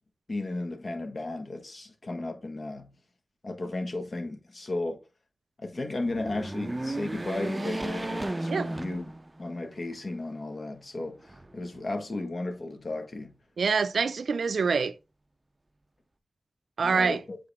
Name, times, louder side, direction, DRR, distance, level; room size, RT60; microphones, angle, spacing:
voice 1, 0.3-2.9 3.4-5.0 5.6-9.0 9.4-13.3 16.8-17.4, left 2 dB, 50° left, 1.5 m, -34 dB
sound 1, 6.0-9.6 10.1-10.2 11.2-12.0, right 1 dB, 25° right, 0.6 m, -34 dB
voice 2, 13.6-14.9 16.8-17.2, right 5 dB, 75° right, 0.4 m, -25 dB
7.8 x 3.7 x 3.5 m
wide cardioid pair, 70°, 0 cm